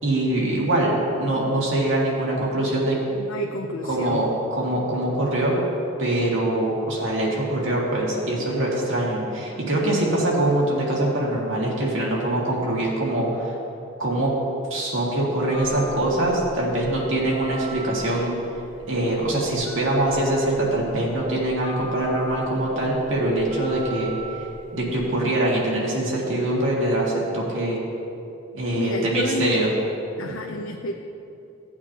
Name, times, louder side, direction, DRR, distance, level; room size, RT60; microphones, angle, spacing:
voice 1, 0.0-3.0 3.9-5.6 6.0-13.6 14.0-14.3 14.7-18.3 18.9-24.1 24.7-27.8 28.5-29.7, right 1 dB, 80° right, -4 dB, 2.1 m, -23 dB
voice 2, 3.1-4.3 16.1-16.4 28.8-29.7 30.2-30.9, left 2 dB, 85° left, 1 dB, 0.6 m, -30 dB
Telephone, 15.5-25.1, equal, 30° left, 2.1 m, -40 dB
16.0 x 8.5 x 3.0 m, 2.8 s
head